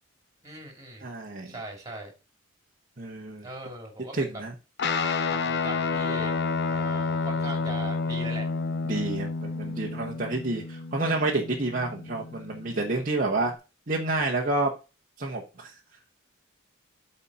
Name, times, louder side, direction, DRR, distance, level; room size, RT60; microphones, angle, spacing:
voice 1, 0.4-1.0 1.5-2.1 3.4-4.4 5.3-6.4 6.7-8.5, right 2 dB, 20° right, 2 dB, 3.2 m, -40 dB
voice 2, 1.0-1.5 3.0-3.4 4.1-4.5 8.8-13.5 13.9-14.7 15.2-15.7, right 2 dB, 45° right, -2 dB, 1.2 m, -29 dB
Guitar, 4.8-13.5, left 4 dB, 55° left, 0.9 m, -30 dB
8.4 x 4.4 x 5.7 m, 0.31 s
head